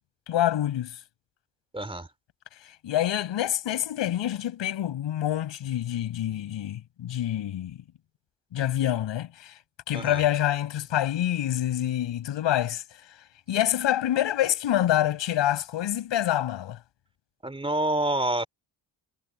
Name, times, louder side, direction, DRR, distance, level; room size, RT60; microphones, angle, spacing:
voice 1, 0.3-1.0 2.6-7.8 8.5-9.6 9.9-12.8 13.5-16.8, left 12 dB, 70° left, 6.3 m, -26 dB
voice 2, 1.7-2.1 9.9-10.2 17.4-18.5, right 1 dB, 10° right, 3.1 m, -27 dB
cardioid pair, 130°, 45 cm